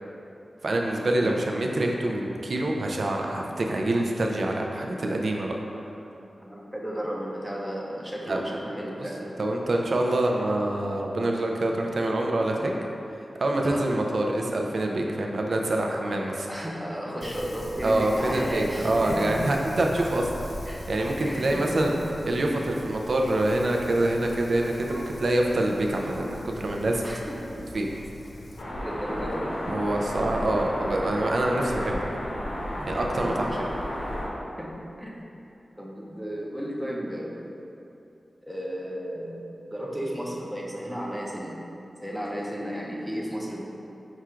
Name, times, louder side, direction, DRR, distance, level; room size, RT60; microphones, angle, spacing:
voice 1, 0.6-5.6 8.3-8.4 9.4-12.8 13.4-16.5 17.8-20.3 20.9-21.9 22.2-27.0 27.7-27.9 29.7-32.0 32.8-33.6, right 1 dB, 65° right, 1 dB, 0.4 m, -26 dB
voice 2, 6.5-9.3 13.6-13.8 16.5-19.5 20.7-20.9 21.2-21.9 27.0-27.6 28.8-29.6 32.9-33.8 34.6-35.2 35.8-37.6 38.4-41.6 42.0-43.6, equal, 5° right, -3 dB, 0.6 m, -34 dB
Wind, 17.2-28.6, left 1 dB, 50° left, 0.3 m, -41 dB
sound 1, 28.6-34.3, equal, 70° left, 0.8 m, -32 dB
4.9 x 2.4 x 4.3 m, 2.8 s
wide cardioid pair, 110°, 0 cm